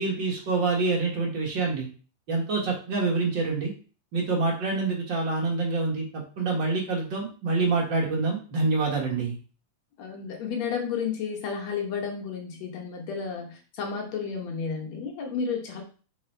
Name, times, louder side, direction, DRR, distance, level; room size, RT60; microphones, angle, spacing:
voice 1, 0.0-1.9 2.3-3.7 4.1-9.4, right 3 dB, 45° right, -2 dB, 1.7 m, -26 dB
voice 2, 10.0-15.8, left 6 dB, 65° left, 2 dB, 1.8 m, -32 dB
5.5 x 4.1 x 4.4 m, 0.37 s
omnidirectional pair, 4.1 m